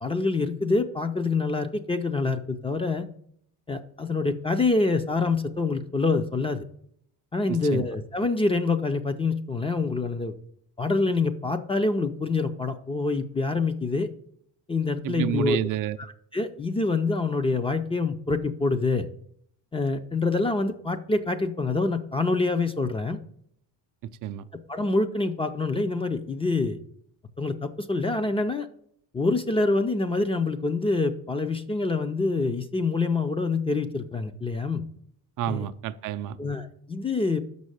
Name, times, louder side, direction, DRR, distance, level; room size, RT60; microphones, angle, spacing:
voice 1, 0.0-3.1 3.7-6.6 7.3-10.3 10.8-14.1 14.7-15.6 16.3-19.1 19.7-23.2 24.7-26.8 27.4-28.7 29.1-34.8 35.5-35.7 36.4-37.4, left 3 dB, 15° left, 8 dB, 0.4 m, -26 dB
voice 2, 7.5-7.9 15.0-16.0 24.2-24.4 35.4-36.4, right 11 dB, 50° right, 11 dB, 0.5 m, -29 dB
6.5 x 5.4 x 6.3 m, 0.67 s
cardioid pair, 135°, 40 cm